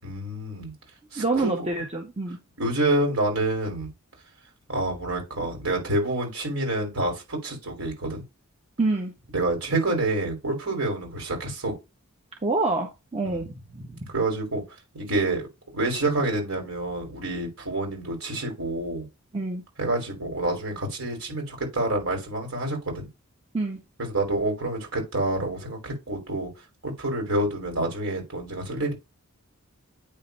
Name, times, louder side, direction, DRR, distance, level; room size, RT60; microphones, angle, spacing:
voice 1, 0.0-0.7 1.1-1.7 2.6-3.9 4.7-8.2 9.3-11.7 13.2-13.4 14.1-14.6 14.9-15.4 15.7-19.1 19.8-23.1 24.0-26.5 26.8-28.9, right 2 dB, 65° right, 5.3 m, -28 dB
voice 2, 1.2-2.4 8.8-9.1 12.4-14.0 19.3-19.6 23.5-23.8, right 3 dB, 30° right, 1.3 m, -27 dB
8.9 x 3.9 x 5.5 m
head